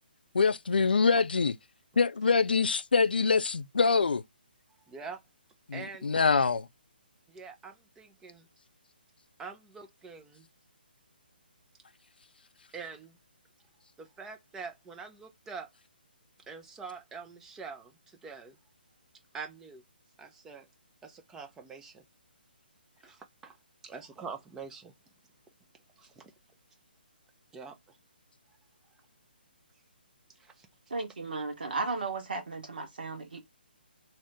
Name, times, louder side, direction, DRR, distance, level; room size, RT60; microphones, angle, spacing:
voice 1, 0.3-1.5 2.0-4.2 5.7-6.6, left 4 dB, 65° left, 0.4 m, -25 dB
voice 2, 4.9-5.2 5.7-6.3 7.3-8.5 9.4-10.5 12.7-13.2 14.0-15.7 16.5-18.6 19.3-19.8 20.2-20.7 21.0-22.0 23.0-23.5 23.8-24.9 26.0-26.3 27.5-27.7 30.4-30.7, right 5 dB, 10° right, 0.4 m, -44 dB
voice 3, 30.9-33.4, right 3 dB, 60° right, 1.2 m, -35 dB
2.8 x 2.5 x 3.4 m
figure-of-eight pair, 140°, 6 cm